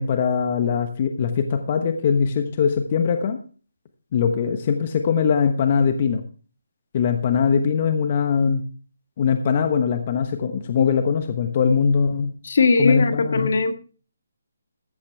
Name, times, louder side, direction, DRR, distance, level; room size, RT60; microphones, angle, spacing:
voice 1, 0.0-3.4 4.1-6.2 6.9-8.6 9.2-12.3 12.8-13.5, left 6 dB, 35° left, 7 dB, 1.1 m, -21 dB
voice 2, 12.4-13.8, left 4 dB, 60° left, 9 dB, 1.6 m, -19 dB
14.5 x 9.9 x 3.3 m, 0.38 s
hypercardioid pair, 165°, 0 cm